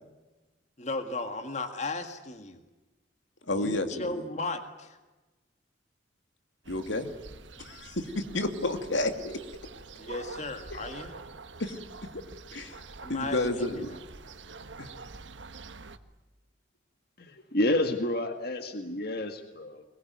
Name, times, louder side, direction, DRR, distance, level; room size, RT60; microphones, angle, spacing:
voice 1, 0.8-2.6 3.5-5.0 10.0-11.2 13.0-14.0, left 2 dB, 40° left, 8 dB, 1.9 m, -36 dB
voice 2, 3.5-4.2 6.7-7.1 7.6-9.4 10.7-10.8 11.6-11.8 12.1-12.2 12.5-12.8 13.1-13.9 14.8-14.9, left 2 dB, 85° left, 7 dB, 2.6 m, -31 dB
sound 1, 6.6-16.0, right 4 dB, 85° right, 1.3 m, -46 dB
voice 3, 17.2-19.8, left 1 dB, 55° left, 7 dB, 1.9 m, -29 dB
23.5 x 21.5 x 9.5 m, 1.1 s
head